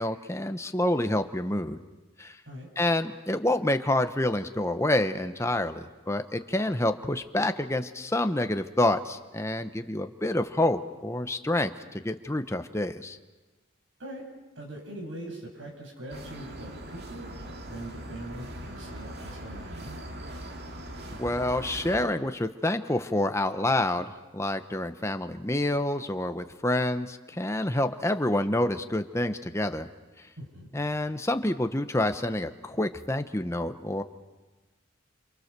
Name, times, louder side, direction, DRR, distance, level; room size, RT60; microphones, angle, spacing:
voice 1, 0.0-1.8 2.2-2.4 2.8-13.2 21.1-29.9 30.7-34.0, left 1 dB, 15° left, 8 dB, 1.0 m, -28 dB
voice 2, 14.5-20.0 30.4-30.7, right 1 dB, 70° right, 0 dB, 6.8 m, -42 dB
sound 1, 16.1-22.1, right 1 dB, 55° right, 2.4 m, -41 dB
28.0 x 28.0 x 6.8 m, 1.2 s
head